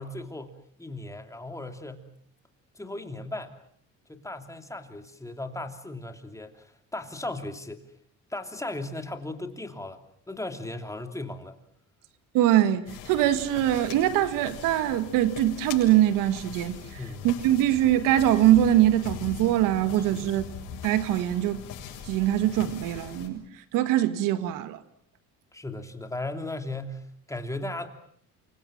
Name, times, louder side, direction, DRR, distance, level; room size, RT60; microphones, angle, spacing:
voice 1, 0.0-2.1 2.7-3.5 4.1-7.8 8.3-11.6 17.0-17.3 20.1-20.3 25.5-27.9, left 2 dB, 10° left, 3.0 m, -37 dB
voice 2, 12.3-16.8 17.2-20.4 20.8-21.6 22.1-23.4 23.7-24.8, right 12 dB, 85° right, 1.8 m, -23 dB
sound 1, 12.9-23.3, left 8 dB, 85° left, 7.5 m, -41 dB
28.5 x 25.0 x 7.4 m
cardioid pair, 110°, 32 cm